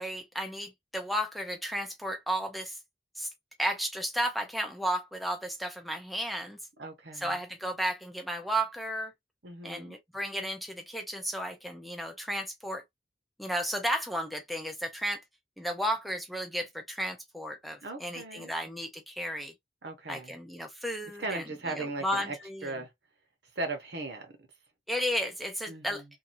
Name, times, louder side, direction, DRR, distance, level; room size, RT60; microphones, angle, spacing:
voice 1, 0.0-2.8 3.2-3.3 3.6-6.6 7.2-9.1 9.6-12.8 13.4-15.2 15.6-19.5 20.1-21.4 21.8-22.6 24.9-26.0, equal, ahead, 0.4 m, -33 dB
voice 2, 6.8-7.4 9.4-10.0 17.8-18.5 19.8-20.3 21.2-22.4 22.6-22.9 23.5-24.5 25.7-26.1, right 2 dB, 70° right, 1.0 m, -38 dB
2.8 x 2.3 x 2.6 m
head